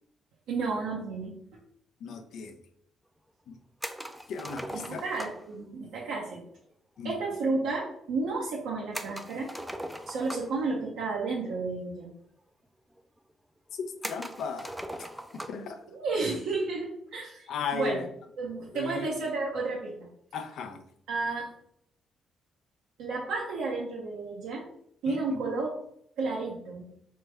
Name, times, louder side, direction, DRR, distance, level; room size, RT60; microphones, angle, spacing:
voice 1, 0.5-1.4 4.7-6.4 7.0-9.5 10.1-12.1 15.9-18.0 18.4-20.1 21.1-21.5 23.0-24.7 25.0-25.8 26.2-26.9, right 3 dB, 85° right, 0.8 m, -32 dB
voice 2, 2.0-2.6 3.5-3.6 4.3-5.1 7.0-7.1 13.7-15.1 15.3-15.8 17.5-18.1 18.7-19.1 20.3-20.8 25.1-25.4, left 5 dB, 75° left, 0.5 m, -36 dB
sound 1, 3.8-5.5 8.9-10.7 11.7-11.8 12.1-12.2 13.0-13.1 14.0-15.7, equal, 5° right, 0.3 m, -39 dB
3.4 x 3.3 x 3.3 m
cardioid pair, 90°, 0 cm